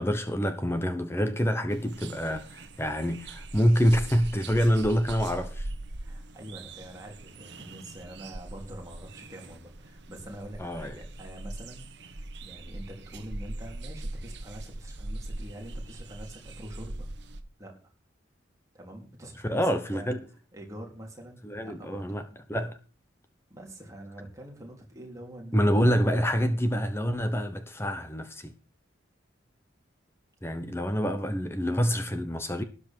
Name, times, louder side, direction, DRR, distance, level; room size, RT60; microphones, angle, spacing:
voice 1, 0.0-5.7 10.6-10.9 19.4-20.2 21.4-22.2 22.5-22.8 25.5-28.5 30.4-32.6, equal, 10° left, 1.0 m, -26 dB
sound 1, 1.7-17.4, right 2 dB, 55° right, 1.3 m, -41 dB
voice 2, 6.0-17.1 17.6-17.7 18.7-20.2 20.5-22.2 23.5-25.9, right 1 dB, 15° right, 3.5 m, -45 dB
13.0 x 11.0 x 4.6 m
head